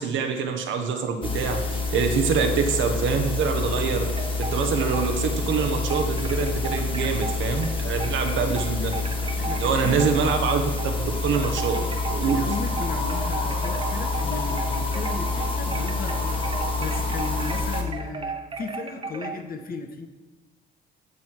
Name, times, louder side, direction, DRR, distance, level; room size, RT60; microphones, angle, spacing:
voice 1, 0.0-4.1 4.4-8.9 9.6-12.4, right 5 dB, 75° right, 5 dB, 1.3 m, -25 dB
sound 1, 1.2-17.8, left 3 dB, 25° left, 1.7 m, -27 dB
sound 2, 3.8-11.0 11.3-19.4, right 4 dB, 25° right, 0.9 m, -36 dB
voice 2, 9.4-10.1 12.2-20.1, left 4 dB, 45° left, 6 dB, 1.3 m, -35 dB
14.5 x 5.7 x 4.7 m, 1.2 s
cardioid pair, 90°, 20 cm